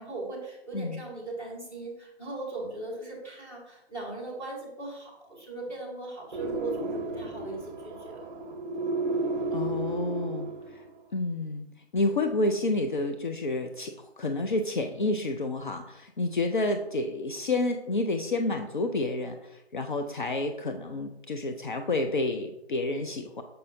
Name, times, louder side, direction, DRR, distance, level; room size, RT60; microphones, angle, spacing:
voice 1, 0.0-8.2, right 2 dB, 5° left, -8 dB, 1.1 m, -38 dB
sound 1, 6.3-10.9, right 2 dB, 40° right, 0.8 m, -33 dB
voice 2, 9.5-10.8 11.1-11.7 11.9-23.4, left 2 dB, 50° left, 5 dB, 0.5 m, -29 dB
6.6 x 5.4 x 2.6 m, 0.87 s
figure-of-eight pair, 150°, 33 cm